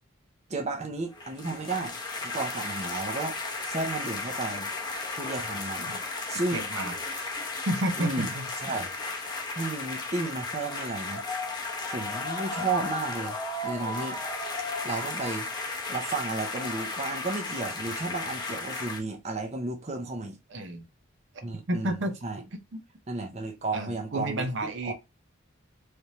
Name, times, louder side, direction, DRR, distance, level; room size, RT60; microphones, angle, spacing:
voice 1, 0.5-2.0 2.2-3.4 3.7-4.7 5.2-6.0 6.3-6.6 8.0-8.3 8.6-8.9 9.5-11.2 11.8-13.4 13.6-14.2 14.8-15.5 15.9-20.4 21.4-22.4 23.1-24.9, right 3 dB, 35° right, 0.7 m, -33 dB
sound 1, 1.1-19.0, left 3 dB, 20° left, 0.7 m, -34 dB
voice 2, 6.5-7.0 7.2-7.3 7.7-8.5 20.5-20.9 21.7-22.1 23.7-24.9, right 1 dB, 70° right, 0.8 m, -30 dB
3.3 x 3.1 x 2.7 m
head